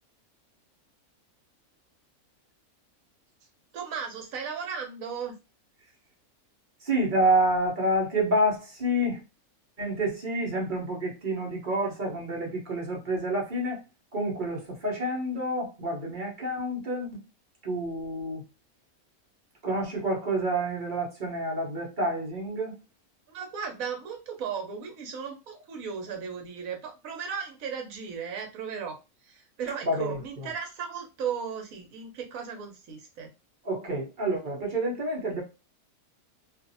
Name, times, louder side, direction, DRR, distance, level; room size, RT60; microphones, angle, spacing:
voice 1, 3.7-5.4 23.3-29.0 29.2-33.3, right 6 dB, 70° right, 3 dB, 1.1 m, -36 dB
voice 2, 6.8-9.2 9.8-13.8 14.1-17.2 17.6-18.4 19.6-22.8 29.8-30.5 33.6-35.4, right 1 dB, 40° right, -1 dB, 0.9 m, -28 dB
2.6 x 2.5 x 2.6 m, 0.27 s
omnidirectional pair, 1.5 m